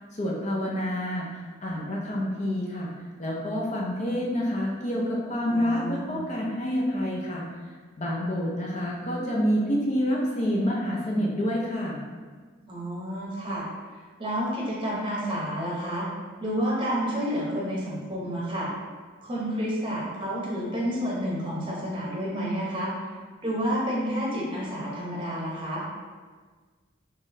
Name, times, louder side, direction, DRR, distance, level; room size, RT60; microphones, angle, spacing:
voice 1, 0.1-2.9 3.2-7.4 8.0-12.0, equal, 35° left, -3 dB, 0.5 m, -28 dB
voice 2, 5.5-6.2 12.7-13.7 13.9-16.1 16.4-18.7 19.2-22.9 23.4-25.8, equal, 25° right, -5 dB, 0.8 m, -30 dB
3.8 x 3.1 x 2.7 m, 1.5 s
head